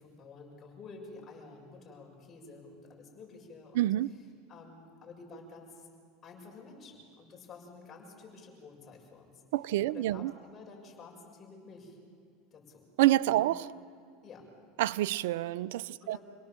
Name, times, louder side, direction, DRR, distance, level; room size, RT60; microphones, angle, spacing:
voice 1, 0.0-3.9 4.5-5.9 6.2-9.4 9.9-12.0 12.5-12.8 13.4-13.5 14.2-14.5 16.0-16.2, left 4 dB, 35° left, 6.9 m, -50 dB
voice 2, 3.7-4.1 9.5-10.3 13.0-13.6 14.8-16.2, right 15 dB, 75° right, 0.5 m, -27 dB
28.0 x 18.0 x 7.5 m
supercardioid pair, 105°, 0 cm